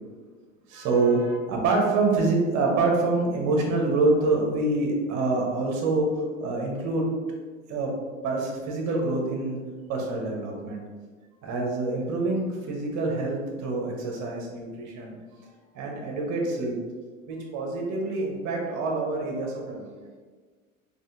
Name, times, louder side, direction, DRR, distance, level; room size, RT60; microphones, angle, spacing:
voice 1, 0.7-7.1 7.7-7.9 8.2-9.6 9.9-10.8 11.4-15.2 15.7-16.7 17.3-19.9, right 3 dB, 45° right, 0 dB, 1.1 m, -26 dB
4.1 x 3.4 x 2.6 m, 1.5 s
figure-of-eight pair, 75°, 40 cm